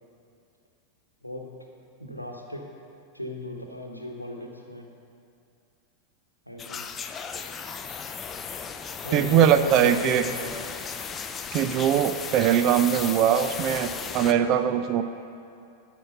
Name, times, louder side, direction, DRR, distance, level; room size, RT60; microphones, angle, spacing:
voice 1, 1.2-1.5 2.0-2.7 3.1-4.9 6.5-6.9 9.0-10.5, left 1 dB, 90° left, 1 dB, 0.9 m, -36 dB
sound 1, 6.6-14.3, left 6 dB, 20° left, 0.5 m, -36 dB
voice 2, 9.1-10.2 11.5-15.0, right 9 dB, 40° right, 11 dB, 0.3 m, -21 dB
12.0 x 4.5 x 6.5 m, 2.5 s
figure-of-eight pair, 90°, 0 cm